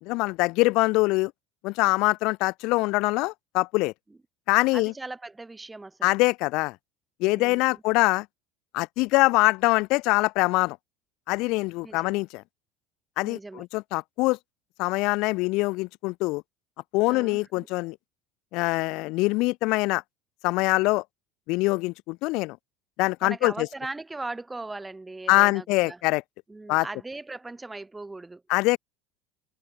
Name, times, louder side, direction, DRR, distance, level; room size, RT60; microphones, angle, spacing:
voice 1, 0.0-1.3 1.6-3.9 4.5-4.9 6.0-6.8 7.2-8.3 8.7-10.8 11.3-12.4 13.2-14.4 14.8-16.4 16.9-18.0 18.5-20.0 20.4-21.0 21.5-22.6 23.0-23.7 25.3-26.2 26.7-26.9 28.5-28.8, left 23 dB, 65° left, 0.5 m, -24 dB
voice 2, 4.7-6.1 7.2-7.8 11.8-12.2 13.2-13.7 17.1-17.7 23.2-26.0 26.5-28.4, right 2 dB, 15° right, 3.8 m, -39 dB
hypercardioid pair, 85°, 0 cm